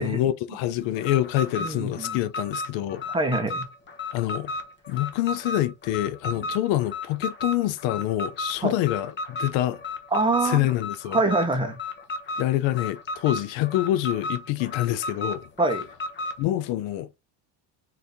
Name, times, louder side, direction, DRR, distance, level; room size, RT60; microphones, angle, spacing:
voice 1, 0.0-3.0 4.1-4.5 4.9-9.8 10.4-11.2 12.4-15.5 16.4-17.2, left 14 dB, 70° left, 0.6 m, -26 dB
Alarm, 0.9-16.4, left 3 dB, 25° left, 0.9 m, -34 dB
voice 2, 1.6-2.2 3.1-3.6 8.6-8.7 10.1-10.7 11.1-11.8 15.6-15.8, right 2 dB, 10° right, 0.9 m, -24 dB
4.0 x 2.8 x 3.5 m
cardioid pair, 130°, 47 cm